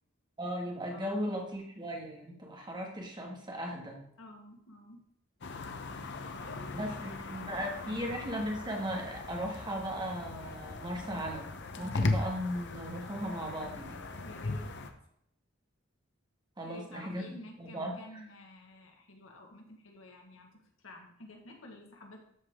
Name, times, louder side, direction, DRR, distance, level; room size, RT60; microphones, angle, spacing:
voice 1, 0.4-4.0 6.7-11.5 11.8-14.0 16.6-18.2, equal, 20° right, 0 dB, 1.9 m, -37 dB
voice 2, 0.9-1.3 4.2-5.0 6.4-8.2 14.2-14.7 16.6-22.2, left 1 dB, 80° left, 2 dB, 1.7 m, -51 dB
sound 1, 5.4-14.9, left 2 dB, 60° left, 0.9 m, -38 dB
13.5 x 4.9 x 3.7 m, 0.73 s
head